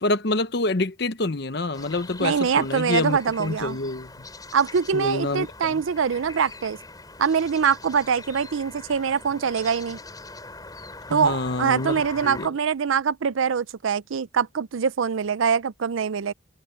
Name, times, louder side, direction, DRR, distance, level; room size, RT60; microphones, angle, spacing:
voice 1, 0.0-4.1 4.9-5.8 11.1-12.5, left 2 dB, 55° left, 0.9 m, -27 dB
sound 1, 1.7-12.5, left 3 dB, 20° left, 7.5 m, -42 dB
voice 2, 2.2-3.8 4.5-6.8 7.2-10.0 11.1-16.3, right 6 dB, 80° right, 0.5 m, -24 dB
head